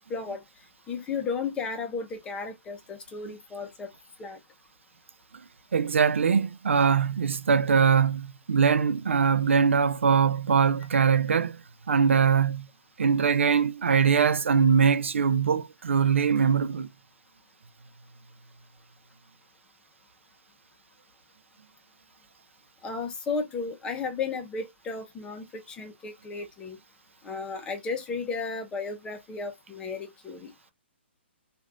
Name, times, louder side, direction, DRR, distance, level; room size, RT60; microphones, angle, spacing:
voice 1, 0.1-0.4 0.9-3.9 4.2-4.4 22.8-26.8 27.2-30.5, left 4 dB, 15° left, 0.7 m, -34 dB
voice 2, 5.7-11.6 11.9-12.7 13.0-16.9, right 6 dB, 90° right, 0.3 m, -22 dB
3.2 x 2.4 x 2.4 m
hypercardioid pair, 145°, 6 cm